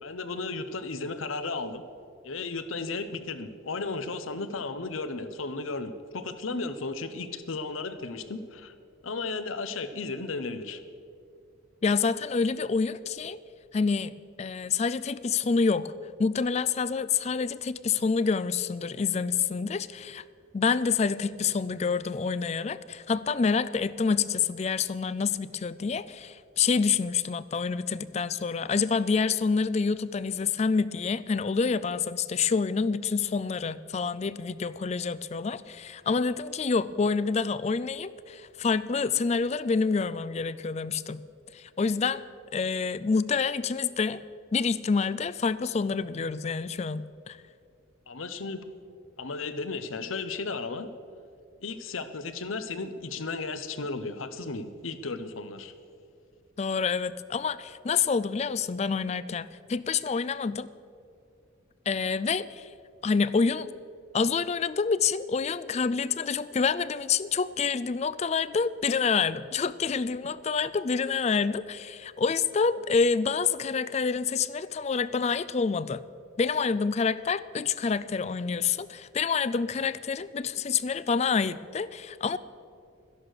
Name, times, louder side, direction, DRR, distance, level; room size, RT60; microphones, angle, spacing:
voice 1, 0.0-1.8 2.2-8.7 9.0-10.8 48.1-48.6 49.2-50.9 51.6-55.7, left 3 dB, 85° left, 11 dB, 0.9 m, -34 dB
voice 2, 11.8-13.4 13.7-14.1 14.4-15.9 16.2-20.2 20.5-41.2 41.5-42.2 42.5-44.2 44.5-47.4 56.6-60.7 61.9-62.7 63.0-63.7 64.1-76.0 76.4-82.4, left 5 dB, 30° left, 16 dB, 0.3 m, -27 dB
13.0 x 11.0 x 6.5 m, 2.4 s
head